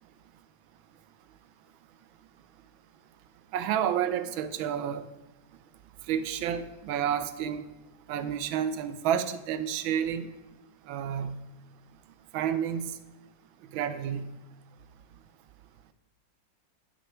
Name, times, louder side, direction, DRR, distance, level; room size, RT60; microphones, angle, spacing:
voice 1, 3.5-5.1 6.1-7.6 8.1-10.3 10.9-11.4 12.3-12.9 13.7-14.3, right 9 dB, 85° right, 12 dB, 1.4 m, -30 dB
10.5 x 6.4 x 4.6 m, 1.1 s
omnidirectional pair, 2.1 m